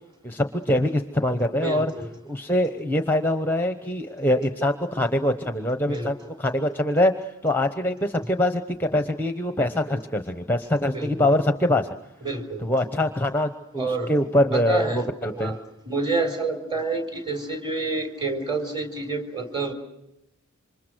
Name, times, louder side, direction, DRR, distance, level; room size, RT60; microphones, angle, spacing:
voice 1, 0.2-1.9 2.2-11.9 12.6-15.6, left 1 dB, 10° left, 8 dB, 1.0 m, -24 dB
voice 2, 1.5-2.1 5.9-6.1 10.8-11.3 12.2-12.7 13.8-14.1 14.5-15.1 15.3-15.6 15.9-19.7, right 3 dB, 20° right, 6 dB, 3.8 m, -28 dB
28.0 x 25.5 x 6.3 m, 0.87 s
head